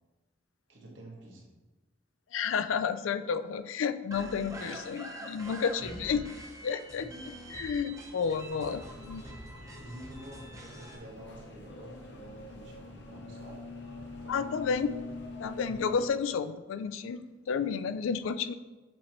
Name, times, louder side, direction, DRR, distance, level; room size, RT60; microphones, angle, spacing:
voice 1, 0.7-1.5 4.5-4.7 5.9-6.0 7.0-7.2 9.7-13.6 14.2-14.5 16.0-16.1, right 1 dB, 75° right, -2 dB, 1.5 m, -49 dB
voice 2, 2.3-6.2 6.6-7.1 7.5-9.2 14.3-14.9 15.4-18.5, left 6 dB, 90° left, 12 dB, 0.4 m, -31 dB
sound 1, 4.1-11.0, right 1 dB, 15° right, 0.7 m, -45 dB
sound 2, 8.2-16.1, left 2 dB, 60° left, 0.8 m, -44 dB
7.4 x 4.3 x 3.0 m, 1.2 s
head